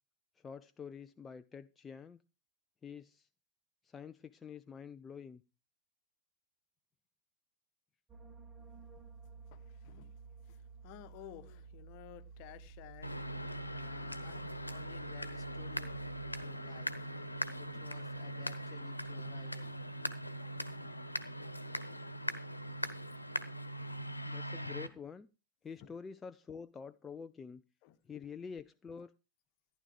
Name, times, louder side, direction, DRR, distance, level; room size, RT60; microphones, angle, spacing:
voice 1, 0.4-2.2 2.8-3.3 3.8-5.4 24.2-25.3 25.6-27.6 28.0-29.1, left 6 dB, 15° left, 0.7 m, -47 dB
sound 1, 8.1-19.5 19.7-20.1, right 5 dB, 20° right, 2.4 m, -54 dB
voice 2, 9.5-10.1 10.4-16.1 16.4-17.1 17.4-19.8 20.4-20.5 25.8-25.9 27.8-28.0, left 13 dB, 45° left, 1.4 m, -55 dB
sound 2, 13.0-24.9, equal, 85° left, 1.3 m, -41 dB
14.5 x 10.5 x 4.7 m
figure-of-eight pair, 90°, 0 cm